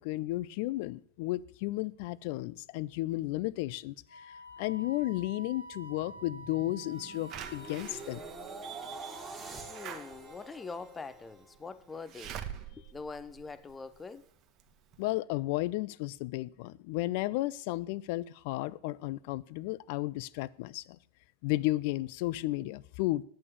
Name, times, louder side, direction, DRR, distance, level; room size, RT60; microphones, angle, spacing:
voice 1, 0.0-8.2 15.0-21.0 21.4-23.2, left 18 dB, 50° left, 0.5 m, -33 dB
Wind instrument woodwind instrument, 4.1-8.2, right 1 dB, 80° left, 2.1 m, -48 dB
sound 1, 5.6-11.8 12.3-12.6, right 3 dB, 15° right, 2.3 m, -47 dB
Slam / Alarm, 7.3-14.1 14.6-14.7 14.9-15.0, right 9 dB, 35° right, 1.4 m, -46 dB
voice 2, 9.7-12.4 12.8-14.3, left 4 dB, 15° left, 0.9 m, -44 dB
8.7 x 8.5 x 8.5 m
figure-of-eight pair, 85°, 0 cm